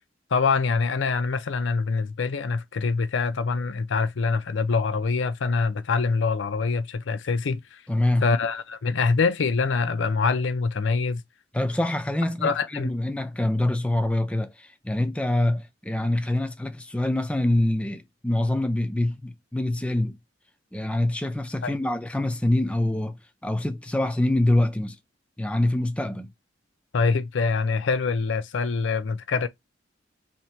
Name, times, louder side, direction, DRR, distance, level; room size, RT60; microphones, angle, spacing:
voice 1, 0.3-7.8 8.2-11.2 12.4-12.9 21.6-21.7 26.9-29.5, left 4 dB, 80° left, 0.5 m, -24 dB
voice 2, 7.9-8.3 11.5-20.2 20.7-25.0 25.4-26.3, left 1 dB, 5° left, 0.4 m, -25 dB
2.8 x 2.8 x 4.4 m
head